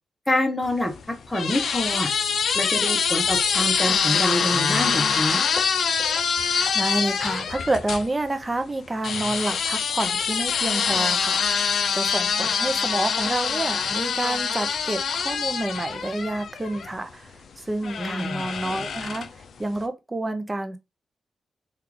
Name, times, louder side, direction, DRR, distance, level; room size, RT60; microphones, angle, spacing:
voice 1, 0.3-0.9 1.3-2.1 2.5-5.4 18.0-18.3, left 1 dB, 10° left, 0.9 m, -26 dB
sound 1, 0.7-8.1 9.0-16.9 17.8-19.4, left 6 dB, 80° left, 0.4 m, -25 dB
voice 2, 6.3-19.3 19.6-20.8, right 2 dB, 25° right, 0.5 m, -29 dB
3.4 x 2.4 x 3.1 m
cardioid pair, 70°, 0 cm